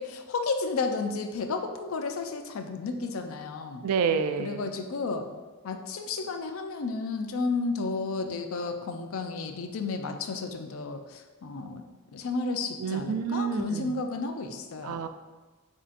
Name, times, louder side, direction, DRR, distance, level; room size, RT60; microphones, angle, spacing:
voice 1, 0.0-3.8 4.4-5.3 5.6-11.8 12.1-15.1, left 3 dB, 70° left, 6 dB, 0.4 m, -32 dB
voice 2, 3.8-4.6 12.8-13.9 14.8-15.1, right 6 dB, 85° right, 9 dB, 0.3 m, -28 dB
7.2 x 2.7 x 2.5 m, 1.3 s
head